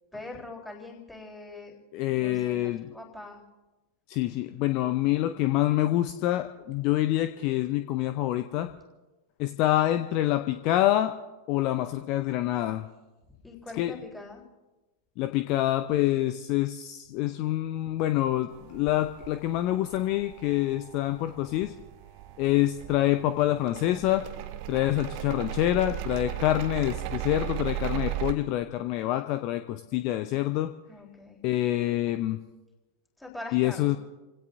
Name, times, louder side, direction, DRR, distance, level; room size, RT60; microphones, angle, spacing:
voice 1, 0.1-1.7 2.1-3.4 13.4-14.4 30.9-31.4 33.2-34.0, left 2 dB, 5° left, -1 dB, 3.9 m, -42 dB
voice 2, 1.9-2.9 4.1-8.7 9.4-11.1 11.5-12.9 13.8-13.9 15.2-21.7 22.4-24.2 24.7-30.7 31.4-32.4 33.5-34.0, left 14 dB, 40° left, 10 dB, 0.6 m, -26 dB
sound 1, 18.5-28.3, right 14 dB, 45° right, 0.9 m, -37 dB
29.5 x 16.5 x 2.7 m, 1.1 s
figure-of-eight pair, 90°, 0 cm